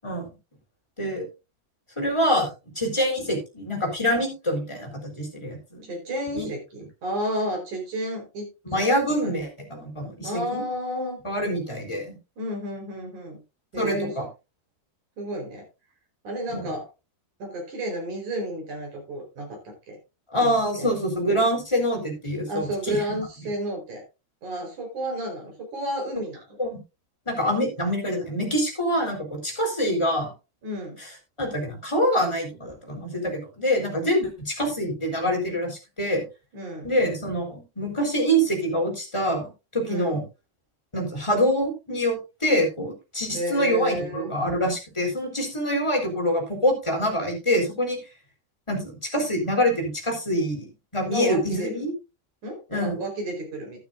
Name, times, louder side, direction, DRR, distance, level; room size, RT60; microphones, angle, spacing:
voice 1, 2.0-2.5 2.8-5.8 6.3-6.5 8.7-10.6 11.2-12.2 13.8-14.3 16.5-16.7 20.3-23.0 26.6-26.8 27.3-30.3 31.4-36.2 36.8-39.5 39.7-40.2 40.9-48.0 48.7-50.7 50.9-51.9 52.7-53.0, equal, 5° left, 0 dB, 3.5 m, -25 dB
voice 2, 5.8-8.9 9.2-9.3 10.2-11.2 12.4-13.4 13.7-14.1 15.2-15.6 16.2-16.9 17.4-20.0 20.4-20.9 22.5-24.0 24.4-26.6 30.6-31.0 36.5-36.9 39.9-40.2 43.3-44.3 51.1-51.8 52.4-53.8, right 1 dB, 50° right, 2 dB, 5.4 m, -32 dB
12.5 x 12.0 x 2.5 m, 0.27 s
omnidirectional pair, 4.7 m